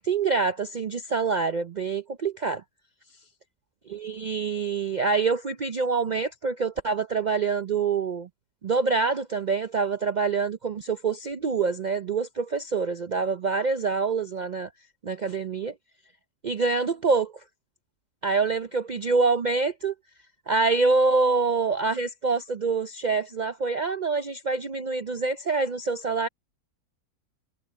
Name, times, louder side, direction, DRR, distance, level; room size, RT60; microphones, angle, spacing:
voice 1, 0.0-2.6 3.9-8.3 8.6-14.7 15.0-15.7 16.4-17.3 18.2-19.9 20.5-26.3, right 4 dB, 65° right, 0.4 m, -26 dB
omnidirectional pair, 1.6 m